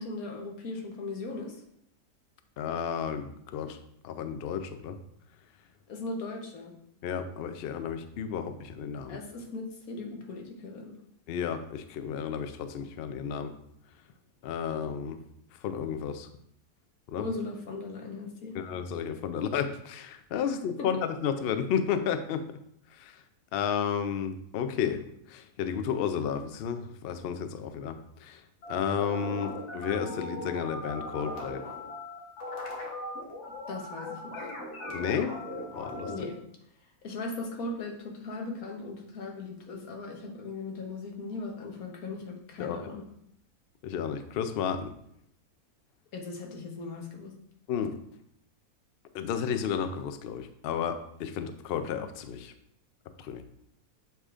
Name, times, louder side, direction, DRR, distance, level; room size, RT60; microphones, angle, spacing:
voice 1, 0.0-1.6 5.9-6.8 9.1-11.0 17.2-18.6 20.8-20.9 33.7-34.4 36.1-36.4 37.0-43.1 46.1-47.3, left 3 dB, 70° left, 2 dB, 1.4 m, -38 dB
voice 2, 2.6-3.8 4.0-5.0 7.0-9.2 11.3-13.5 14.4-15.2 15.6-16.3 17.1-17.3 18.5-22.6 22.9-23.2 23.5-25.0 25.3-28.4 28.7-31.6 34.9-35.3 35.7-36.1 42.6-42.8 43.8-44.9 47.7-48.0 49.1-52.5 53.2-53.4, left 7 dB, 90° left, 9 dB, 0.5 m, -32 dB
sound 1, 28.6-36.2, left 1 dB, 50° left, 1.3 m, -39 dB
8.0 x 4.9 x 2.5 m, 0.71 s
omnidirectional pair, 1.6 m